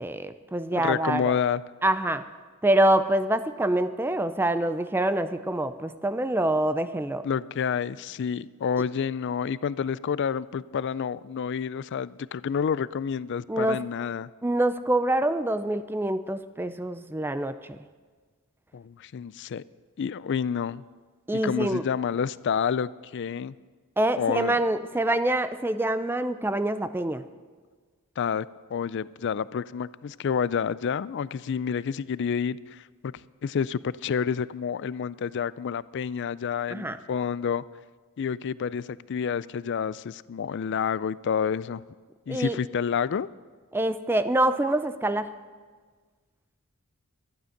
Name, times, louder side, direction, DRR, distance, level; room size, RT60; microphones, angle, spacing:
voice 1, 0.0-1.3 1.8-2.2 2.6-7.2 13.5-13.8 14.4-17.8 21.3-21.9 24.0-27.2 36.7-37.0 42.3-42.6 43.7-45.3, right 1 dB, 10° right, 12 dB, 0.4 m, -25 dB
voice 2, 0.8-1.6 7.2-14.3 18.7-19.6 20.0-20.8 21.3-23.5 24.2-24.6 28.2-37.6 38.2-41.8 42.3-43.3, left 7 dB, 55° left, 19 dB, 0.3 m, -29 dB
12.5 x 11.5 x 6.5 m, 1.5 s
head